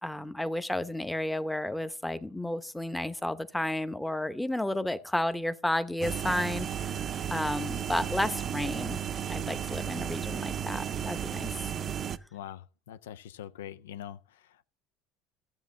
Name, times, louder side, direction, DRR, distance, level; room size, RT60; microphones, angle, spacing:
voice 1, 0.0-9.0 9.3-11.6, left 1 dB, 5° left, 0.7 m, -32 dB
sound 1, 6.0-12.2, right 8 dB, 40° right, 0.5 m, -34 dB
voice 2, 12.3-14.6, left 10 dB, 90° left, 0.3 m, -44 dB
12.5 x 7.3 x 3.7 m
supercardioid pair, 90°, 0 cm